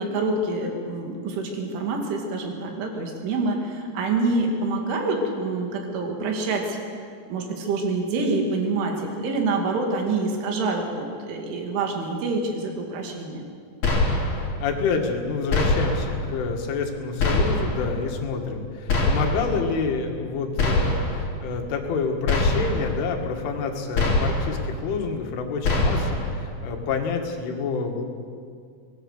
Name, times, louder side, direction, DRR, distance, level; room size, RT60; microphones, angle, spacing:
voice 1, 0.0-6.8 7.3-13.4, right 3 dB, 80° right, 2 dB, 4.9 m, -26 dB
sound 1, 13.8-14.5 15.5-16.2 17.2-17.9 18.9-19.6 20.6-21.3 22.3-23.0 23.9-24.6 25.6-26.3, left 2 dB, 45° left, 4.2 m, -23 dB
voice 2, 14.6-28.1, left 5 dB, 80° left, 3 dB, 4.4 m, -28 dB
23.5 x 19.0 x 6.8 m, 2.3 s
omnidirectional pair, 5.5 m